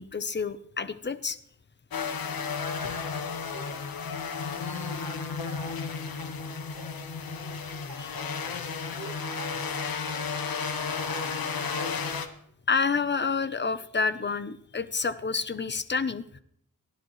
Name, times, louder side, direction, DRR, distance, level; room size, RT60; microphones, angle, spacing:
voice 1, 0.0-1.4 12.7-16.4, left 5 dB, 30° left, 12 dB, 0.8 m, -29 dB
sound 1, 1.9-12.3, left 5 dB, 80° left, 1.5 m, -33 dB
voice 2, 3.5-6.9 7.2-8.3 8.9-11.8, right 3 dB, 60° right, -2 dB, 8.0 m, -48 dB
29.5 x 12.0 x 3.2 m, 0.69 s
wide cardioid pair, 120°, 35 cm